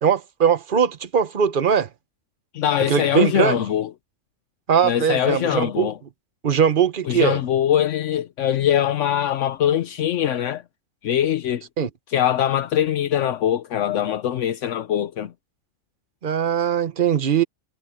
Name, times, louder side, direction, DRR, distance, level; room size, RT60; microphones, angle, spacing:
voice 1, 0.0-1.9 2.9-3.6 4.7-5.9 6.4-7.4 11.8-11.9 16.2-17.4, right 8 dB, 45° right, 1.1 m, -20 dB
voice 2, 2.5-3.9 4.8-6.0 7.0-10.6 11.0-11.6 12.1-15.3, left 10 dB, 75° left, 1.0 m, -22 dB
omnidirectional pair, 1.3 m